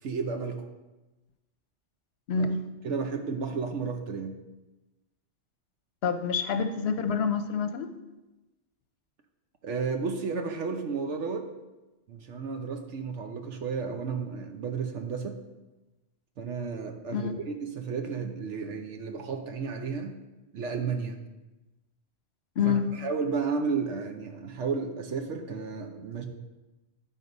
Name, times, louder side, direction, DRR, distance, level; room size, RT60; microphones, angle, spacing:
voice 1, 0.0-0.7 2.4-2.5 2.8-4.4 9.6-11.5 12.1-15.4 16.4-20.1 20.5-21.2 22.6-26.3, right 5 dB, 80° right, 4 dB, 1.1 m, -32 dB
voice 2, 2.3-2.6 6.0-7.9 17.1-17.3 22.6-22.9, left 6 dB, 65° left, 9 dB, 0.9 m, -27 dB
11.0 x 4.0 x 5.2 m, 1.1 s
omnidirectional pair, 1.2 m